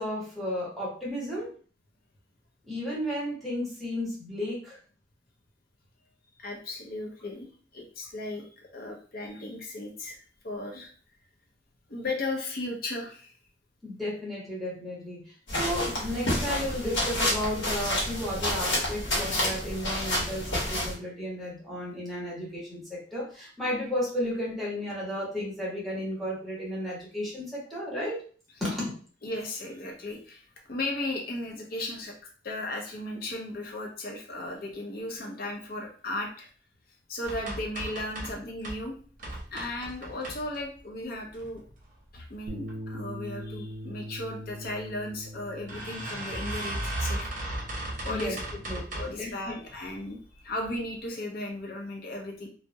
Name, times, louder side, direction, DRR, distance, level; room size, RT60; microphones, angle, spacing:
voice 1, 0.0-1.5 2.7-4.8 13.8-28.2 28.6-28.9 48.1-48.4 48.7-49.6, left 1 dB, ahead, -7 dB, 0.9 m, -33 dB
voice 2, 6.4-7.5 7.7-10.9 11.9-13.3 29.2-32.2 32.4-36.5 37.1-39.0 39.3-41.6 42.1-47.3 48.0-48.4 48.9-52.5, left 2 dB, 55° left, 2 dB, 0.6 m, -36 dB
sound 1, 15.5-20.9, left 1 dB, 80° left, 0.9 m, -29 dB
sound 2, 37.2-38.8 39.2-40.8 41.3-41.9 42.3-42.8 43.0-43.1 43.4-43.5 44.5-44.7 45.0-45.1 45.7-49.2 49.7-50.1 50.6-50.7 51.0-51.1, right 1 dB, 45° right, 0.7 m, -36 dB
Bass guitar, 42.5-48.7, equal, 75° right, 0.3 m, -42 dB
2.2 x 2.0 x 2.7 m, 0.43 s
head